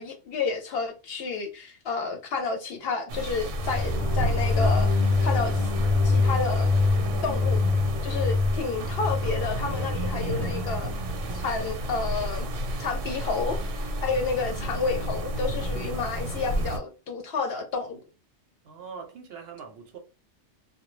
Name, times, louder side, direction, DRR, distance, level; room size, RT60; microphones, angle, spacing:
voice 1, 0.0-5.7 6.0-6.7 7.2-7.7 8.0-10.9 11.3-12.5 12.8-18.0, left 4 dB, 65° left, 0.7 m, -30 dB
sound 1, 3.1-16.8, right 1 dB, 85° right, 1.0 m, -31 dB
sound 2, 3.5-10.8, left 3 dB, 85° left, 0.3 m, -25 dB
sound 3, 3.7-16.5, right 2 dB, 40° right, 0.3 m, -48 dB
voice 2, 18.6-20.0, right 6 dB, 65° right, 0.7 m, -42 dB
2.2 x 2.1 x 3.0 m
omnidirectional pair, 1.2 m